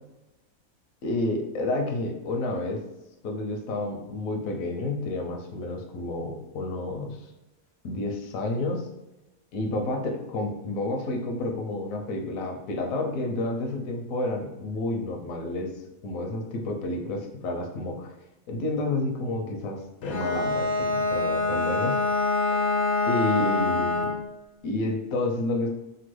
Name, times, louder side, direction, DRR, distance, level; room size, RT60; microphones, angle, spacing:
voice 1, 1.0-2.8 3.2-7.2 7.8-8.8 9.5-15.7 16.0-18.1 18.5-22.0 23.1-24.2 24.6-25.7, left 2 dB, 80° left, 2 dB, 1.0 m, -30 dB
Bowed string instrument, 20.0-24.3, left 3 dB, 60° left, 0.6 m, -25 dB
3.0 x 2.3 x 3.0 m, 0.98 s
omnidirectional pair, 1.4 m